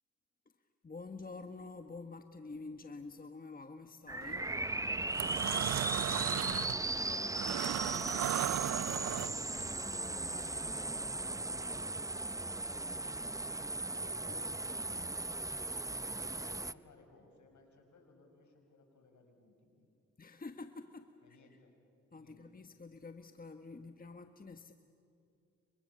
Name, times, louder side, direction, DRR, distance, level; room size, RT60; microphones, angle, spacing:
voice 1, 0.8-4.5 16.2-16.5 20.2-21.4 22.1-24.7, left 3 dB, 25° left, 8 dB, 1.3 m, -48 dB
sound 1, 4.1-16.7, right 2 dB, 10° right, 0.7 m, -37 dB
sound 2, 4.2-4.5 4.9-9.6, right 12 dB, 55° right, 0.5 m, -36 dB
voice 2, 5.3-7.0 7.2-9.8 10.2-13.1 13.7-15.6 16.3-19.9 21.2-21.7 22.2-22.4, left 3 dB, 65° left, 4 dB, 6.1 m, -63 dB
30.0 x 24.5 x 7.0 m, 2.7 s
supercardioid pair, 50°, 32 cm